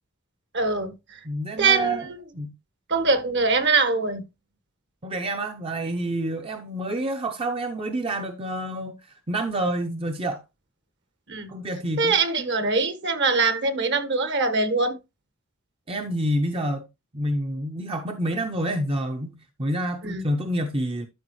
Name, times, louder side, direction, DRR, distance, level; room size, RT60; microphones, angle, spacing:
voice 1, 0.5-0.9 1.6-2.2 2.9-4.2 11.3-11.5 12.0-14.9 20.0-20.2, right 4 dB, 55° right, 1.4 m, -23 dB
voice 2, 1.2-2.1 2.3-2.5 5.0-10.4 11.5-12.5 15.9-16.9 17.1-21.1, right 1 dB, 25° right, 0.7 m, -28 dB
12.0 x 5.3 x 3.1 m
head